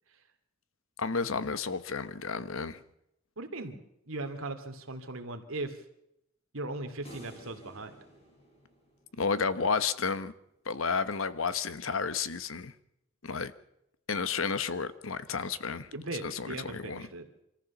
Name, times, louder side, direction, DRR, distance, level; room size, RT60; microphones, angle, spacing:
voice 1, 1.0-2.8 9.1-10.3 10.6-12.7 13.2-13.5 14.1-15.9 16.2-17.1, left 5 dB, 75° left, 1.1 m, -31 dB
voice 2, 3.4-3.8 4.1-5.8 6.5-7.9 15.9-17.4, right 2 dB, 90° right, 2.5 m, -38 dB
sound 1, 7.1-9.5, right 1 dB, 30° left, 5.9 m, -52 dB
25.0 x 14.5 x 7.1 m
head